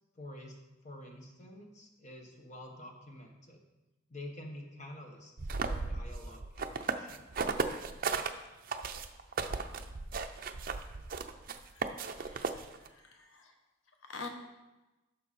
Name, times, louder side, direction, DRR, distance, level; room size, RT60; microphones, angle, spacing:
voice 1, 0.1-0.6 0.8-3.6 4.1-5.3 5.6-7.3, left 1 dB, 35° left, 2 dB, 1.3 m, -48 dB
sound 1, 5.4-8.3 8.7-12.9, right 4 dB, 45° right, 0.6 m, -35 dB
voice 2, 11.7-13.5 14.0-14.3, left 4 dB, 85° left, 4 dB, 1.0 m, -47 dB
11.0 x 6.5 x 4.2 m, 1.1 s
head